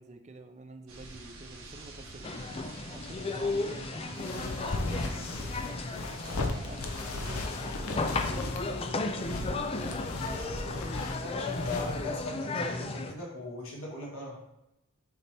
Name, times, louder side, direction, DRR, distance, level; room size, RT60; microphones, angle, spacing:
voice 1, 0.0-2.4 2.9-5.5 6.2-9.6 10.1-10.8, right 2 dB, 30° right, 6 dB, 0.5 m, -48 dB
sound 1, 0.9-7.5, right 2 dB, 70° right, 1.0 m, -48 dB
sound 2, 2.2-13.1, left 3 dB, 25° left, 0.3 m, -35 dB
sound 3, 4.1-12.2, left 2 dB, 85° left, 0.7 m, -37 dB
voice 2, 11.2-14.4, left 2 dB, 65° left, -3 dB, 1.8 m, -39 dB
6.8 x 4.2 x 3.4 m, 0.88 s
head